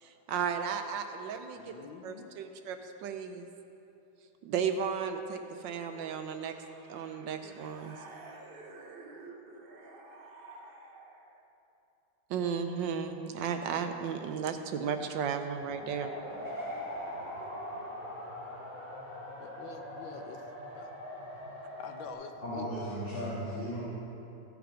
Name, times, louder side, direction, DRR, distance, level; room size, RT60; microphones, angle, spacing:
voice 1, 0.0-1.7 2.0-3.5 4.4-6.5 6.9-8.0 12.3-16.1, right 7 dB, 75° right, 7 dB, 1.2 m, -34 dB
voice 2, 1.5-2.3 7.2-7.9 19.4-20.9 21.8-22.7, left 6 dB, 75° left, 6 dB, 1.5 m, -48 dB
sound 1, 5.6-11.4, right 3 dB, 60° right, 0.6 m, -51 dB
sound 2, 15.6-22.1, equal, 15° left, 2.7 m, -41 dB
voice 3, 22.4-23.9, equal, 30° left, -10 dB, 2.2 m, -35 dB
14.5 x 6.8 x 5.0 m, 2.9 s
omnidirectional pair, 2.1 m